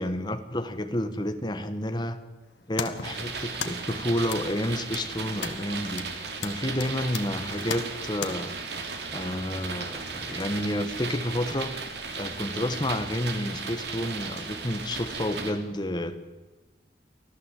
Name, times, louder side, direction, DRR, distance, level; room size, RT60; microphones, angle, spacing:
voice 1, 0.0-2.2 2.7-6.1 6.4-8.6 9.1-11.7 12.1-16.2, left 1 dB, 25° left, 9 dB, 1.5 m, -30 dB
sound 1, 2.4-8.3, left 6 dB, 90° left, 1.8 m, -39 dB
sound 2, 3.0-15.5, right 4 dB, 70° right, 3.0 m, -36 dB
25.0 x 16.0 x 8.4 m, 1.1 s
head